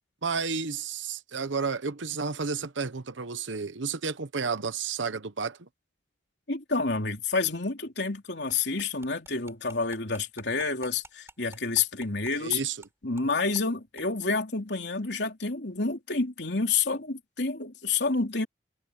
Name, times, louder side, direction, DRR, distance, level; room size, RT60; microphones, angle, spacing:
voice 1, 0.2-5.7 12.4-12.8, right 5 dB, 80° right, 1.0 m, -31 dB
voice 2, 6.5-12.6 13.0-18.5, left 4 dB, 65° left, 3.4 m, -29 dB
sound 1, 8.5-12.9 13.2-13.3 13.5-13.7 14.0-14.1, right 3 dB, 15° right, 4.7 m, -51 dB
head